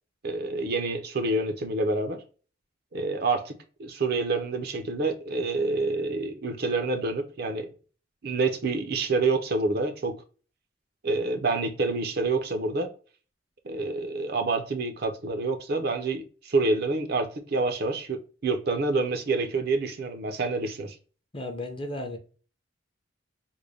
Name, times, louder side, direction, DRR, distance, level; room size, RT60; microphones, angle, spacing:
voice 1, 0.2-2.2 2.9-3.5 3.8-7.7 8.2-10.2 11.0-12.9 13.6-20.9, right 3 dB, 55° right, 0.6 m, -27 dB
voice 2, 21.3-22.2, left 1 dB, 25° left, 0.6 m, -34 dB
3.8 x 2.1 x 3.2 m
head